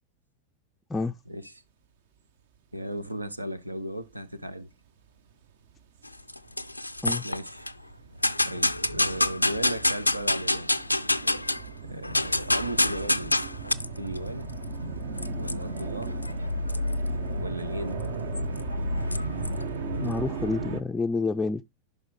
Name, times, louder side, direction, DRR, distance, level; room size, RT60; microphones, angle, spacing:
voice 1, 2.7-4.7 7.2-7.7 8.4-10.7 11.8-13.4 14.0-14.5 15.4-16.2 17.4-18.0, right 1 dB, 85° right, 0.7 m, -36 dB
sound 1, 4.2-4.5 5.1-20.8, right 5 dB, 55° right, 0.8 m, -38 dB
sound 2, 6.1-7.7 8.2-11.7 12.0-20.5, left 2 dB, 85° left, 0.4 m, -28 dB
voice 2, 20.0-21.6, left 3 dB, 10° left, 0.4 m, -28 dB
11.0 x 5.4 x 3.2 m
figure-of-eight pair, 90°, 0 cm